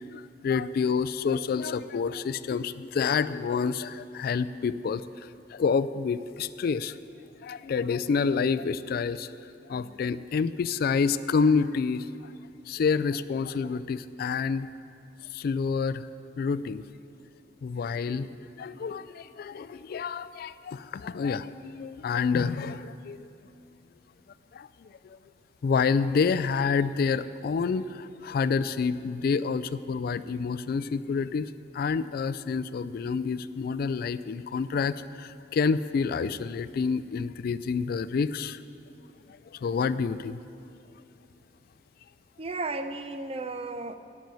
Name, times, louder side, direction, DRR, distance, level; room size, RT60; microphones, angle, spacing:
voice 1, 0.1-5.0 5.5-7.0 7.4-9.4 9.7-12.3 12.7-14.7 15.3-16.1 16.4-16.8 17.6-18.3 18.6-23.3 24.5-25.2 25.6-38.6 39.3-40.4, left 5 dB, 55° left, 16 dB, 0.3 m, -28 dB
voice 2, 42.4-43.9, right 3 dB, 30° right, 10 dB, 0.5 m, -34 dB
10.5 x 6.9 x 9.1 m, 2.6 s
head